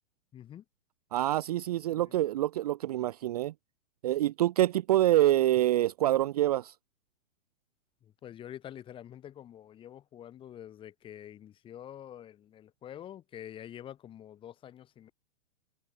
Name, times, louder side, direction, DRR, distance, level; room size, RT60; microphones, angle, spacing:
voice 1, 0.3-0.6 1.7-2.2 8.0-15.1, left 10 dB, 15° left, 3.4 m, -47 dB
voice 2, 1.1-3.5 4.0-6.7, right 14 dB, 30° right, 0.8 m, -26 dB
hypercardioid pair, 170°, 38 cm